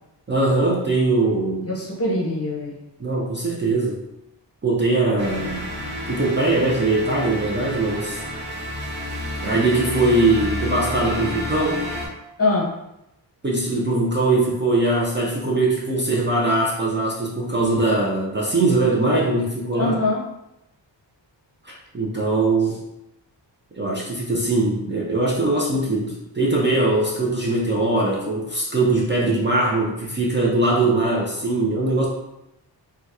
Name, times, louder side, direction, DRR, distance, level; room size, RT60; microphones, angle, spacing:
voice 1, 0.3-1.7 3.0-4.0 4.6-5.7 6.1-8.2 9.4-11.8 13.4-20.0 21.6-22.8 23.8-32.1, right 2 dB, 25° right, -4 dB, 0.5 m, -21 dB
voice 2, 1.7-2.8 12.4-12.7 19.8-20.2, left 2 dB, 35° left, -4 dB, 0.8 m, -23 dB
sound 1, 5.2-12.1, left 1 dB, 60° right, 1.2 m, -30 dB
2.7 x 2.2 x 3.4 m, 0.87 s
wide cardioid pair, 120°, 44 cm